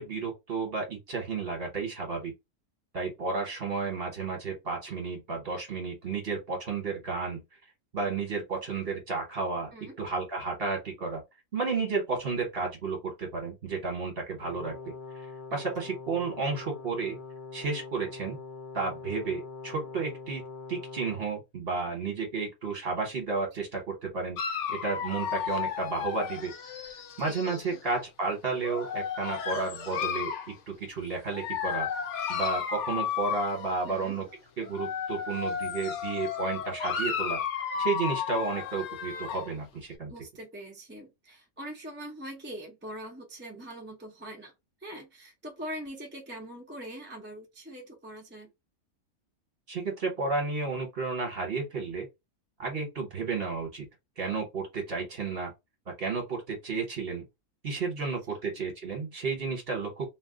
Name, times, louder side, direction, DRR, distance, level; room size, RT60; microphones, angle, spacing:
voice 1, 0.0-2.3 2.9-7.4 7.9-9.7 10.0-11.2 11.5-14.8 15.5-17.2 17.5-18.4 18.7-24.4 24.7-26.5 27.2-31.9 32.3-34.2 34.6-37.4 37.8-40.1 49.7-52.1 52.6-53.9 54.2-55.5 56.0-57.2 57.6-60.1, right 4 dB, 45° right, 1.2 m, -32 dB
Brass instrument, 14.4-21.3, left 4 dB, 85° left, 0.4 m, -43 dB
Dog, 24.4-27.8 28.6-30.5 31.3-33.9 34.6-39.5, left 8 dB, 65° left, 0.8 m, -33 dB
voice 2, 33.8-34.2 40.1-44.5 44.8-48.5 58.0-58.4, right 1 dB, 10° right, 0.6 m, -42 dB
2.6 x 2.3 x 3.5 m
omnidirectional pair, 1.5 m